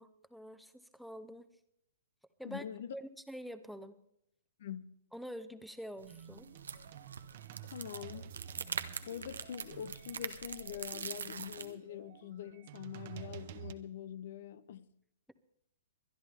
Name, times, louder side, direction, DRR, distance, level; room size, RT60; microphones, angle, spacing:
voice 1, 0.0-1.5 2.4-2.6 2.9-4.0 5.1-6.5, equal, ahead, 0.8 m, -46 dB
voice 2, 2.4-2.9 4.6-4.9 7.7-8.3 9.1-14.9, left 10 dB, 60° left, 0.6 m, -44 dB
sound 1, 6.0-13.7, right 10 dB, 55° right, 1.0 m, -51 dB
sound 2, 6.0-11.7, right 5 dB, 90° right, 1.0 m, -43 dB
24.0 x 10.5 x 3.5 m
hypercardioid pair, 135°, 0 cm